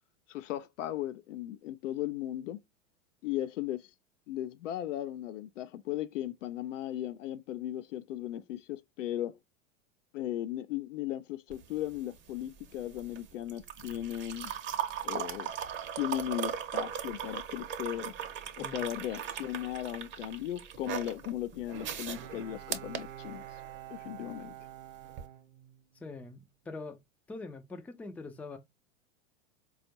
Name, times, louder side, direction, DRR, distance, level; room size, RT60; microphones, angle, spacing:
voice 1, 0.3-2.6 3.2-3.9 4.3-9.4 10.1-14.5 15.0-15.5 16.0-18.1 18.6-23.4 23.9-24.5, left 13 dB, 75° left, 0.5 m, -37 dB
Serve Coffee, 11.5-23.8 25.1-25.2, right 9 dB, 30° right, 0.7 m, -38 dB
Bowed string instrument, 21.7-26.2 26.7-26.8, right 12 dB, 75° right, 0.7 m, -47 dB
voice 2, 26.0-27.0 27.3-28.6, left 3 dB, 5° left, 0.4 m, -43 dB
4.2 x 2.3 x 2.7 m
hypercardioid pair, 95°, 38 cm